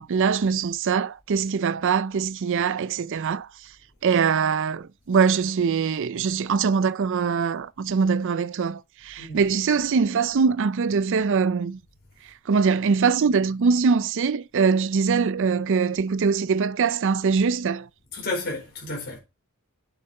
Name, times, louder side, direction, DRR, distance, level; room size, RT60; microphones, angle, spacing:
voice 1, 0.0-3.5 4.0-11.8 12.5-17.9, right 5 dB, 55° right, 0.4 m, -23 dB
voice 2, 18.1-19.2, left 2 dB, 45° left, 4.7 m, -31 dB
8.8 x 6.5 x 4.4 m
head